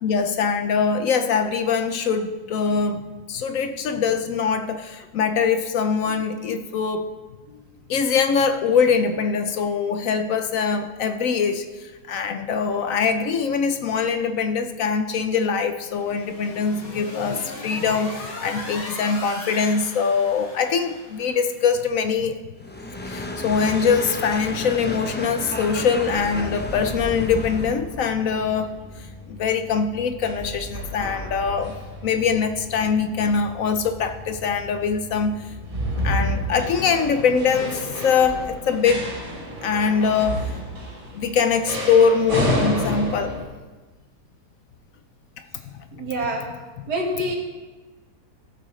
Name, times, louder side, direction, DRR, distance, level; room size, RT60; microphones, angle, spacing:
voice 1, 0.0-7.1 7.9-22.4 23.0-28.7 29.3-31.8 32.0-35.5 36.0-39.1 39.6-40.5 41.1-43.3 45.6-45.7, left 6 dB, 65° left, 8 dB, 0.9 m, -23 dB
sound 1, 16.0-21.5, left 1 dB, 45° left, 2.1 m, -38 dB
sound 2, 22.6-27.8, left 1 dB, 15° left, 0.4 m, -31 dB
sound 3, 27.3-43.4, equal, 60° right, 3.8 m, -31 dB
voice 2, 45.9-46.5 46.9-47.4, right 1 dB, 85° right, 0 dB, 2.2 m, -27 dB
14.5 x 8.5 x 3.2 m, 1.2 s
omnidirectional pair, 1.7 m